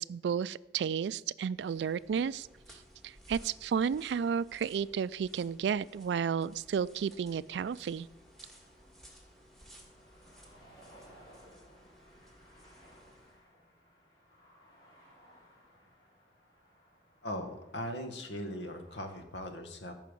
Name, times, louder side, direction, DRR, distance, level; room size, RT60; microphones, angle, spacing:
voice 1, 0.0-2.5 3.0-8.1, right 7 dB, 70° right, 19 dB, 0.3 m, -32 dB
sound 1, 1.5-13.4, equal, ahead, 1.8 m, -57 dB
sound 2, 7.9-19.2, equal, 25° left, 3.9 m, -61 dB
voice 2, 17.2-19.9, left 1 dB, 85° left, 5 dB, 1.5 m, -39 dB
14.0 x 5.7 x 5.3 m, 0.95 s
head